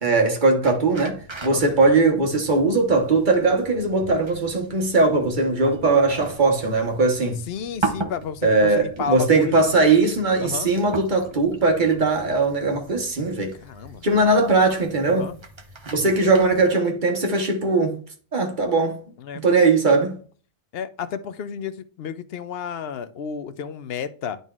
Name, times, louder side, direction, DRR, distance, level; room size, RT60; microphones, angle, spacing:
voice 1, 0.0-7.4 8.4-13.5 14.0-15.3 15.9-18.0 18.3-19.0 19.3-20.2, right 3 dB, 50° right, 1.3 m, -20 dB
sound 1, 0.6-16.7, right 3 dB, 30° right, 0.8 m, -38 dB
voice 2, 7.5-9.6 10.4-10.7 13.5-14.0 15.1-15.4 19.2-19.4 20.7-24.4, left 7 dB, 75° left, 0.8 m, -32 dB
10.5 x 3.9 x 2.4 m
omnidirectional pair, 1.0 m